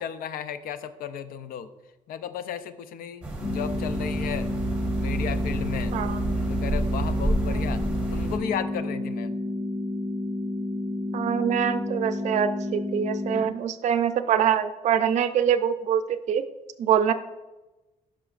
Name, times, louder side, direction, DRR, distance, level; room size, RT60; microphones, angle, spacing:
voice 1, 0.0-1.7 2.1-4.5 5.0-6.0 6.5-7.8 8.1-9.4, left 8 dB, 90° left, 12 dB, 0.5 m, -34 dB
sound 1, 3.2-8.4, right 2 dB, 5° right, 0.9 m, -29 dB
sound 2, 3.4-13.4, left 2 dB, 25° left, 1.4 m, -30 dB
voice 2, 11.1-16.0 16.3-16.4 16.8-17.1, right 8 dB, 55° right, 11 dB, 0.4 m, -24 dB
11.0 x 5.7 x 2.4 m, 1.1 s
cardioid pair, 175°, 15 cm